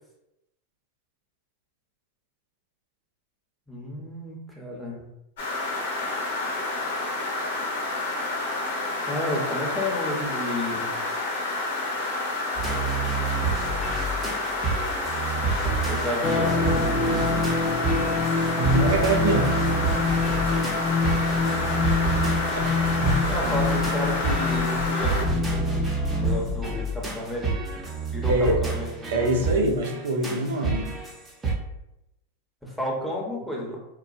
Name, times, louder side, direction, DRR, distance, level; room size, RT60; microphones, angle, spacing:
voice 1, 3.7-5.0 9.1-10.9 15.8-17.4 23.3-27.8 28.1-29.7 32.6-33.8, left 1 dB, ahead, -4 dB, 0.9 m, -32 dB
sound 1, 5.4-25.2, left 2 dB, 70° left, 0.8 m, -29 dB
sound 2, 12.6-31.5, right 4 dB, 25° right, 0.7 m, -29 dB
sound 3, 16.2-26.4, left 4 dB, 40° left, 0.6 m, -26 dB
voice 2, 18.6-19.7 20.1-20.5 22.5-23.5 28.3-28.6 29.1-30.9, right 1 dB, 80° right, 2 dB, 0.4 m, -25 dB
2.9 x 2.1 x 2.5 m, 0.88 s
hypercardioid pair, 100°, 0 cm